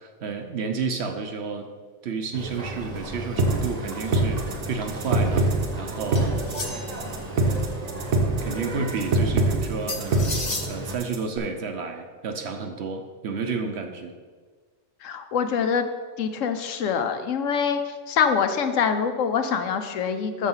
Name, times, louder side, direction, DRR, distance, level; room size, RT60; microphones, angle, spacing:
voice 1, 0.0-1.7 2.0-5.4 5.8-6.4 8.4-10.4 10.7-14.1, right 5 dB, 60° right, 6 dB, 0.8 m, -31 dB
Boat Water vehicle, 2.3-11.0, right 1 dB, 35° right, 0.9 m, -35 dB
sound 1, 3.4-11.4, right 2 dB, 85° right, 1.5 m, -23 dB
sound 2, 6.1-7.1 9.9-10.7, left 3 dB, 30° left, 0.7 m, -32 dB
voice 2, 15.0-15.9 16.2-20.5, left 6 dB, 70° left, 8 dB, 1.0 m, -25 dB
6.7 x 6.3 x 5.5 m, 1.5 s
omnidirectional pair, 1.5 m